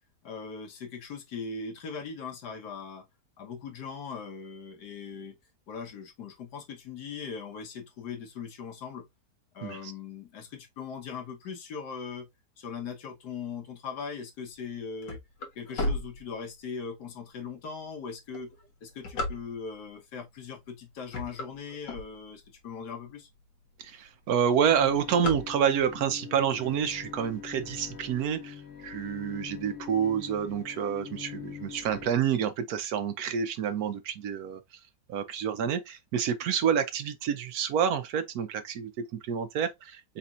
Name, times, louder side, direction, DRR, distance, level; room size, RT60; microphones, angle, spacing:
voice 1, 0.2-3.0 3.4-5.3 5.7-9.0 9.5-12.3 12.6-15.2 15.5-18.5 18.8-23.3, left 5 dB, 75° left, 1.6 m, -40 dB
voice 2, 9.6-9.9 23.8-34.8 35.1-40.2, right 8 dB, 70° right, 1.0 m, -28 dB
sound 1, 14.6-16.8 17.4-17.5 18.2-19.9 20.5-20.7 21.0-22.6 23.1-23.2 23.4-23.5 23.8-24.1 24.4-26.0, left 2 dB, 90° left, 1.9 m, -34 dB
Bowed string instrument, 24.6-32.1, left 8 dB, 50° left, 1.2 m, -43 dB
4.2 x 4.1 x 2.4 m
omnidirectional pair, 1.8 m